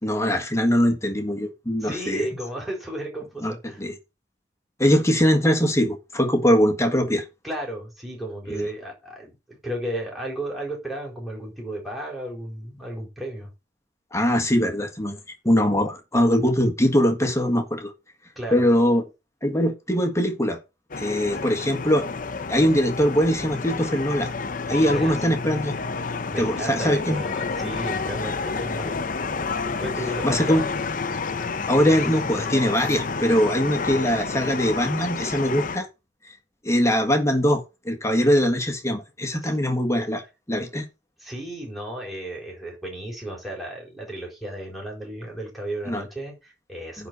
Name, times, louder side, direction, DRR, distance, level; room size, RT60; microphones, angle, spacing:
voice 1, 0.0-2.3 3.4-3.9 4.8-7.2 8.5-8.7 14.1-15.2 15.4-17.9 18.5-19.0 19.4-20.6 21.0-22.1 22.5-24.3 24.7-25.8 26.4-27.2 30.2-30.6 31.7-35.9 36.6-40.2 40.5-40.8 45.9-46.0 47.0-47.1, equal, 15° left, 1.6 m, -22 dB
voice 2, 1.8-3.8 7.4-13.5 18.4-18.6 24.7-25.2 26.3-29.0 29.8-30.6 39.4-39.6 41.2-47.1, right 1 dB, ahead, 4.2 m, -34 dB
sound 1, 20.9-35.8, left 4 dB, 50° left, 0.8 m, -30 dB
10.0 x 4.1 x 6.9 m
head